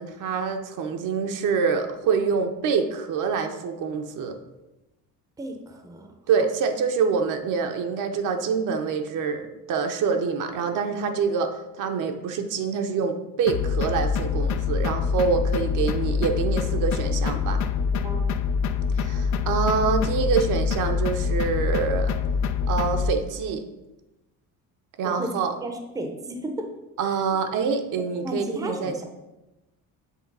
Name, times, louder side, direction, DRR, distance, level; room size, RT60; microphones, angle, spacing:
voice 1, 0.0-4.3 6.3-17.6 19.0-22.2 22.7-23.6 25.0-25.5 27.0-29.0, right 5 dB, 60° right, 5 dB, 0.8 m, -26 dB
voice 2, 5.4-6.1 11.3-11.4 18.0-18.3 25.0-25.3 25.6-26.6 27.0-27.2 28.2-29.0, right 1 dB, 10° right, 4 dB, 0.6 m, -33 dB
sound 1, 13.5-23.1, left 6 dB, 50° left, 0.5 m, -25 dB
7.5 x 3.3 x 5.3 m, 0.97 s
cardioid pair, 150°, 35 cm